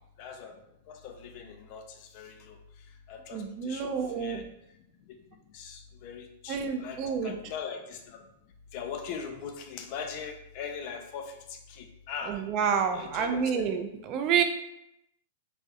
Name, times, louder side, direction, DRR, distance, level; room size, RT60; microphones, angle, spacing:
voice 1, 0.2-0.6 0.9-2.6 3.1-4.4 5.1-5.2 5.5-8.3 8.7-12.4 12.9-13.6, left 6 dB, 50° left, 5 dB, 0.4 m, -41 dB
voice 2, 3.3-4.4 6.5-7.4 12.3-14.4, right 7 dB, 40° right, 5 dB, 0.3 m, -29 dB
2.3 x 2.0 x 2.7 m, 0.83 s
hypercardioid pair, 120°, 0 cm